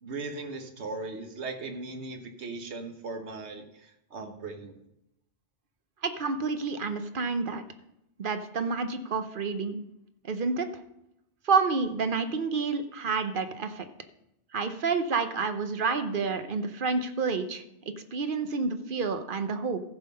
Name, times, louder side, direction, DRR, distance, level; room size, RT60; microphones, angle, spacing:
voice 1, 0.0-4.7, right 3 dB, 70° right, 6 dB, 1.5 m, -38 dB
voice 2, 6.0-7.6 8.2-9.8 10.3-10.7 11.4-13.9 14.5-17.6 18.0-19.8, right 4 dB, 50° right, 9 dB, 0.9 m, -29 dB
14.0 x 5.5 x 5.4 m, 0.83 s
omnidirectional pair, 1.2 m